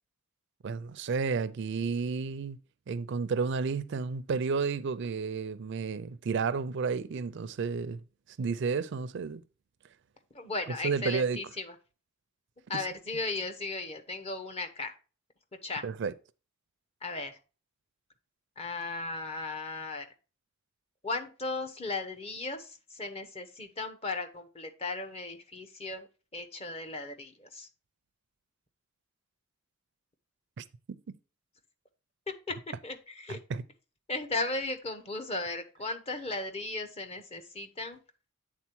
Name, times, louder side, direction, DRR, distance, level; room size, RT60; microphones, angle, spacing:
voice 1, 0.6-2.6 2.9-8.0 8.4-9.4 10.7-11.4 12.7-12.9 15.8-16.1 30.6-31.0 33.3-33.6, right 5 dB, 60° right, 0.4 m, -32 dB
voice 2, 10.3-11.7 12.7-14.9 15.6-15.8 17.0-17.4 18.6-20.1 21.0-26.1 26.3-27.7 32.5-32.6 32.8-33.4 34.1-38.0, left 3 dB, 30° left, 0.9 m, -36 dB
8.5 x 3.7 x 4.5 m
head